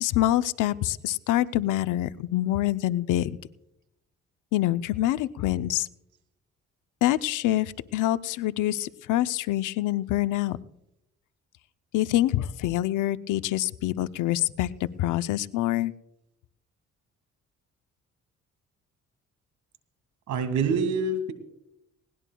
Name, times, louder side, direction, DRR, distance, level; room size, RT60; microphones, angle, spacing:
voice 1, 0.0-3.4 4.5-5.9 7.0-10.6 11.9-15.9, left 14 dB, 85° left, 13 dB, 0.6 m, -26 dB
voice 2, 20.3-21.3, right 4 dB, 75° right, 10 dB, 2.0 m, -26 dB
20.0 x 19.0 x 2.3 m, 0.84 s
cardioid pair, 90°, 30 cm